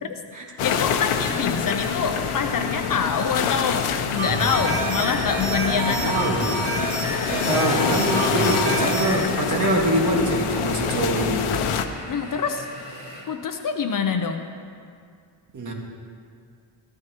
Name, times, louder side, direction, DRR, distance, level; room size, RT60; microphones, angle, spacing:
sound 1, 0.6-11.9, left 7 dB, 80° left, 0.8 m, -26 dB
voice 1, 0.6-6.2 12.1-12.7 13.3-14.5, left 6 dB, 45° left, 6 dB, 0.6 m, -26 dB
sound 2, 1.6-13.2, left 1 dB, 25° left, 3.6 m, -40 dB
sound 3, 4.2-9.2, right 3 dB, 90° right, 3.4 m, -28 dB
voice 2, 5.8-6.5 7.3-11.5 15.5-15.7, right 1 dB, 40° right, -1 dB, 1.7 m, -24 dB
14.5 x 14.0 x 3.0 m, 2.2 s
cardioid pair, 150°, 48 cm